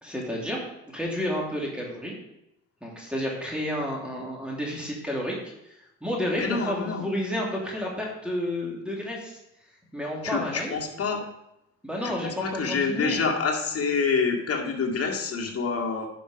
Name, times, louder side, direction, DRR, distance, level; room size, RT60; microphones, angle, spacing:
voice 1, 0.0-0.6 0.9-2.1 2.8-5.4 5.7-9.4 9.9-10.8 11.8-13.2, equal, 5° right, -3 dB, 2.8 m, -31 dB
voice 2, 6.4-7.1 10.2-11.2 12.0-16.1, left 5 dB, 50° left, 1 dB, 2.1 m, -27 dB
10.5 x 5.3 x 5.0 m, 0.85 s
cardioid pair, 90°, 30 cm